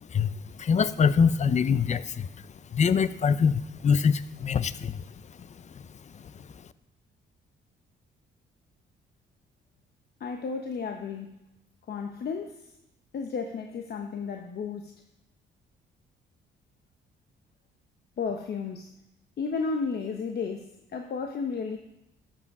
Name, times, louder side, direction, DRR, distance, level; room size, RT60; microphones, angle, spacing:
voice 1, 0.1-2.3 2.7-5.0, left 6 dB, 35° left, 15 dB, 0.6 m, -24 dB
voice 2, 10.2-11.3 11.9-12.6 13.1-14.9 18.2-18.9 19.4-21.8, left 5 dB, 55° left, 4 dB, 1.0 m, -33 dB
13.0 x 7.6 x 4.9 m, 0.90 s
cardioid pair, 90°, 20 cm